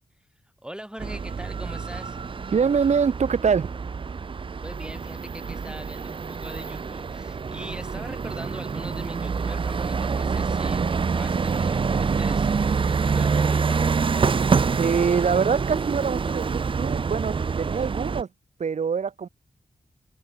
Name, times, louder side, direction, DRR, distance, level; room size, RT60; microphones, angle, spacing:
voice 1, 0.6-2.2 4.6-13.9, right 1 dB, 5° right, 2.6 m, -41 dB
sound 1, 1.0-18.2, right 5 dB, 40° right, 0.5 m, -26 dB
voice 2, 2.5-3.7 14.8-18.3 18.6-19.3, right 6 dB, 60° right, 1.1 m, -24 dB
cardioid pair, 70°, 13 cm